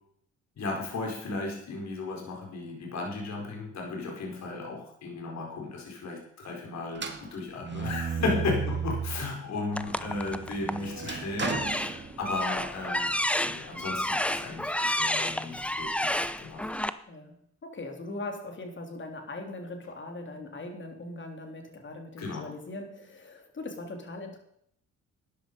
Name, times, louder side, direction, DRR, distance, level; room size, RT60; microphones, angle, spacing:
voice 1, 0.6-13.1 13.4-16.7 22.2-22.5, left 3 dB, 65° left, 0 dB, 4.9 m, -35 dB
sound 1, 6.9-9.4 9.8-12.6, right 6 dB, 35° right, 2.1 m, -35 dB
sound 2, 9.7-10.9 11.4-16.9, left 1 dB, 5° left, 0.8 m, -30 dB
voice 2, 17.1-24.4, left 2 dB, 40° left, 4 dB, 3.6 m, -40 dB
13.5 x 10.5 x 5.4 m, 0.70 s
cardioid pair, 90°, 30 cm